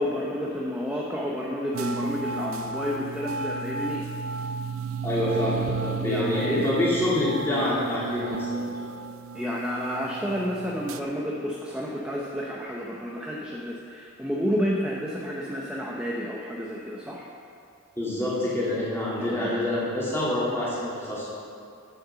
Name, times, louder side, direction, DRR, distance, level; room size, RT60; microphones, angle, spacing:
voice 1, 0.0-4.0 6.1-6.7 9.3-17.3 19.2-19.5, equal, 5° right, -4 dB, 0.7 m, -30 dB
Shadow Maker-Living Room, 1.7-11.0, right 4 dB, 70° right, 0.5 m, -33 dB
voice 2, 5.0-8.6 18.0-21.2, left 1 dB, 10° left, -8 dB, 2.5 m, -26 dB
8.3 x 7.8 x 6.9 m, 2.4 s
head